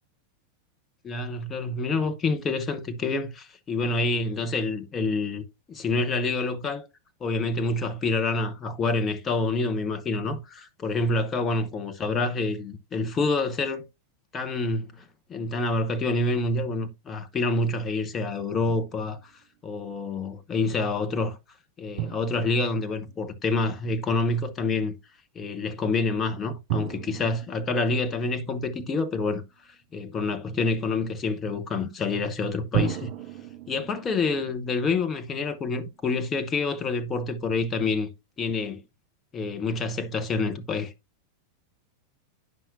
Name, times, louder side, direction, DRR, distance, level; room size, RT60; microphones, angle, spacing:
voice 1, 1.0-5.4 5.7-6.9 7.2-13.9 14.3-19.3 19.6-21.4 21.8-24.9 25.3-29.4 29.9-33.1 33.7-38.1 38.4-38.8 39.3-40.9, left 3 dB, 20° left, 1.0 m, -27 dB
Drum, 18.7-19.4 22.0-23.7 26.7-29.2 32.7-35.9, right 12 dB, 45° right, 2.0 m, -36 dB
9.4 x 5.8 x 2.7 m
figure-of-eight pair, 90°, 0 cm